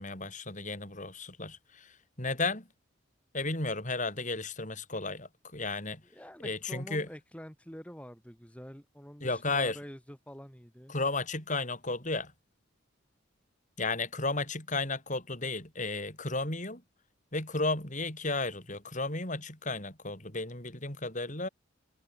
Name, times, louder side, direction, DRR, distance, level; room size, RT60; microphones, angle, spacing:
voice 1, 0.0-1.9 2.2-2.7 3.3-6.0 6.4-7.1 9.2-9.8 10.9-12.3 13.8-16.8 17.3-21.5, left 3 dB, 40° left, 7.3 m, -33 dB
voice 2, 6.0-10.9, equal, 5° left, 6.2 m, -47 dB
head